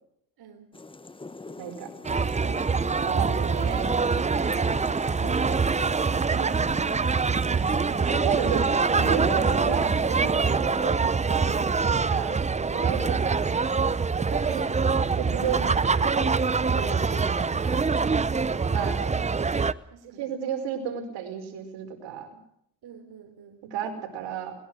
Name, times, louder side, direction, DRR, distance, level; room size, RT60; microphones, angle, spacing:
sound 1, 0.7-10.3, left 3 dB, 10° left, 0.9 m, -41 dB
voice 1, 1.6-1.9 3.0-3.9 6.4-6.5 7.7-11.0 11.3-12.4 12.7-13.4 14.3-14.6 15.1-16.3 16.7-17.9 18.7-19.0 20.2-22.3 23.7-24.5, right 8 dB, 85° right, 5 dB, 5.0 m, -33 dB
sound 2, 2.0-19.7, right 4 dB, 15° right, 0.7 m, -24 dB
voice 2, 5.1-7.7 18.5-19.3 19.9-20.3 22.8-23.6, right 6 dB, 60° right, 4 dB, 3.8 m, -46 dB
21.5 x 20.5 x 6.4 m, 0.72 s
cardioid pair, 105°, 43 cm